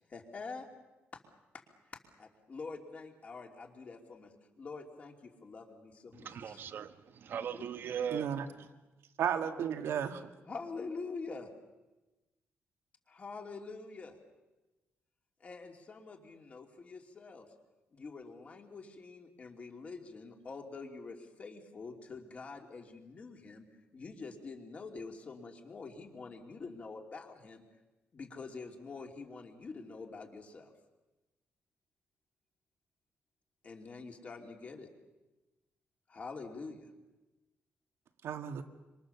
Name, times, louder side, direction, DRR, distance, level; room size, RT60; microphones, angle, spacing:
voice 1, 0.1-0.7 1.1-1.2 1.9-6.6 7.6-7.7 8.1-8.2 10.5-11.5 13.1-14.2 15.4-17.5 17.9-23.6 23.9-27.6 28.1-30.7 33.6-34.9 36.1-36.9, left 4 dB, 30° left, 2.9 m, -46 dB
voice 2, 6.2-8.3, right 8 dB, 50° right, 1.1 m, -39 dB
voice 3, 8.1-8.5 9.2-10.3 38.2-38.6, right 8 dB, 70° right, 1.9 m, -33 dB
26.5 x 26.0 x 7.1 m
cardioid pair, 160°, 5 cm